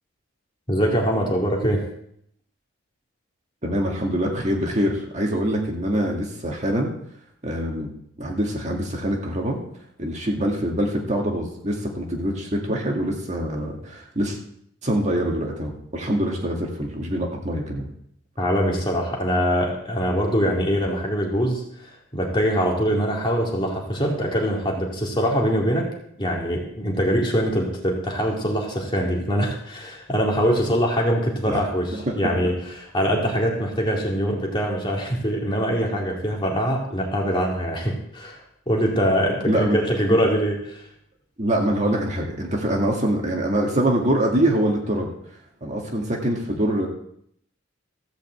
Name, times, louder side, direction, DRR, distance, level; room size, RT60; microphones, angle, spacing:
voice 1, 0.7-1.8 18.4-25.9 26.2-31.9 32.2-38.4 38.7-40.8, equal, 25° left, -1 dB, 2.3 m, -23 dB
voice 2, 3.6-6.9 7.4-7.9 8.2-9.6 10.0-14.4 14.8-17.9 31.5-32.2 39.5-39.8 40.1-40.2 41.4-45.1 45.6-46.9, right 1 dB, 35° right, 0 dB, 1.9 m, -24 dB
14.5 x 5.2 x 7.9 m, 0.69 s
head